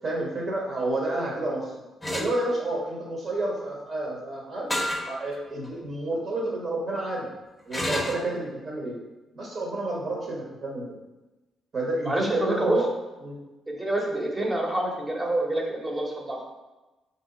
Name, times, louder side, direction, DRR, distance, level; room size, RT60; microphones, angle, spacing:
voice 1, 0.0-1.7 2.1-4.7 5.0-7.3 7.7-9.0 9.3-11.0 11.7-12.9 13.2-13.4, right 2 dB, 50° right, -3 dB, 1.1 m, -30 dB
sound 1, 2.0-2.3 4.7-5.1 5.6-5.7 7.7-8.2, left 1 dB, 10° left, 0.8 m, -28 dB
voice 2, 12.0-12.8 13.7-16.4, right 1 dB, 20° right, 0 dB, 0.9 m, -27 dB
4.6 x 2.9 x 3.8 m, 1.1 s
cardioid pair, 90°, 0 cm